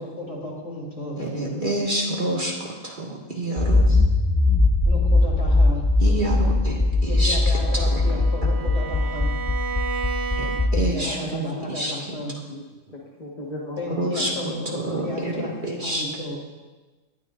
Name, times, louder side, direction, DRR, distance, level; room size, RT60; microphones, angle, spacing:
voice 1, 0.0-1.1 4.8-5.8 7.0-9.3 10.7-12.3 13.8-16.4, left 1 dB, 60° left, -4 dB, 3.5 m, -34 dB
voice 2, 1.2-4.0 6.0-8.5 10.4-11.9 14.0-16.0, right 1 dB, 35° right, -2 dB, 1.9 m, -28 dB
Accelerating revving vroom, 3.6-10.8, left 2 dB, 15° left, 0.6 m, -20 dB
Bowed string instrument, 7.2-11.0, right 5 dB, 60° right, 0.9 m, -33 dB
voice 3, 10.8-11.2 12.5-12.6 13.2-14.0, left 1 dB, 30° left, -3 dB, 1.5 m, -36 dB
19.0 x 12.5 x 2.5 m, 1.2 s
omnidirectional pair, 1.4 m